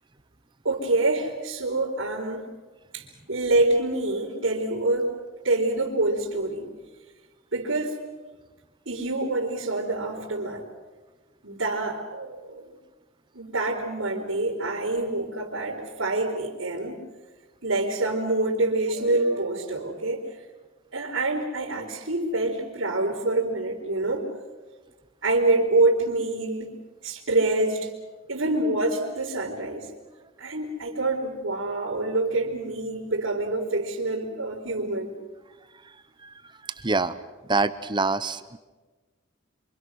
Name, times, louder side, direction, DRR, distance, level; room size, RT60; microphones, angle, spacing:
voice 1, 0.6-2.5 2.9-5.1 5.4-6.7 7.5-8.0 8.9-10.7 11.4-12.8 13.3-17.0 17.6-20.2 20.9-24.3 25.2-26.8 27.0-27.9 28.3-29.9 30.4-35.1, right 2 dB, 75° right, -7 dB, 4.1 m, -26 dB
voice 2, 36.6-37.2 37.5-38.6, right 3 dB, 25° right, 13 dB, 0.8 m, -25 dB
27.5 x 25.0 x 6.4 m, 1.3 s
head